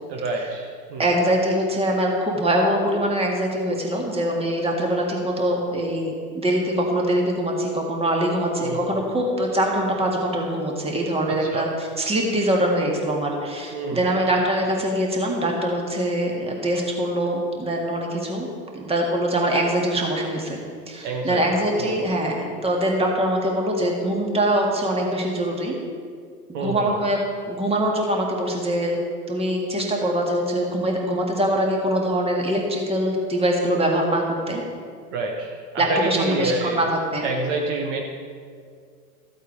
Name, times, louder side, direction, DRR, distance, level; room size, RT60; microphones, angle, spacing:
voice 1, 0.1-1.1 8.6-9.1 11.3-11.7 13.7-14.2 21.0-21.5 21.7-22.0 26.5-26.9 35.1-36.8 37.2-38.0, right 2 dB, 45° right, 1 dB, 1.3 m, -28 dB
voice 2, 1.0-18.5 18.7-25.7 26.5-27.2 27.5-29.0 29.3-34.6 35.8-37.2, right 1 dB, 10° right, 0 dB, 2.0 m, -23 dB
14.0 x 8.1 x 4.6 m, 2.2 s
figure-of-eight pair, 90°, 47 cm